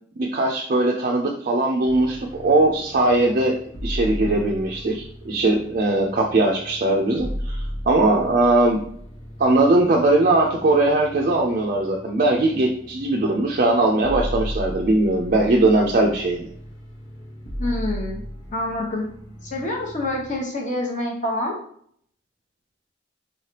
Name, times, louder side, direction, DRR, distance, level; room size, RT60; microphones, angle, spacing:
voice 1, 0.2-3.6 3.8-8.8 9.4-16.5, right 2 dB, 45° right, 0 dB, 0.4 m, -20 dB
sound 1, 1.8-20.4, equal, 75° left, 1.1 m, -35 dB
voice 2, 17.6-18.2 18.5-19.1 19.4-21.5, left 1 dB, 40° left, 0 dB, 0.9 m, -26 dB
4.1 x 3.2 x 2.8 m, 0.63 s
head